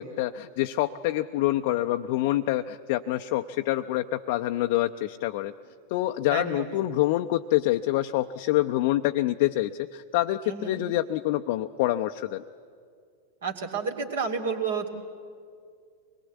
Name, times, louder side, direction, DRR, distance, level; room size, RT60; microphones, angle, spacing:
voice 1, 0.0-5.5 5.9-12.4, left 15 dB, 50° left, 6 dB, 0.6 m, -26 dB
voice 2, 6.3-6.9 10.4-10.8 13.4-14.9, right 5 dB, 65° right, 3 dB, 2.5 m, -31 dB
23.5 x 21.0 x 8.2 m, 2.2 s
figure-of-eight pair, 90°, 0 cm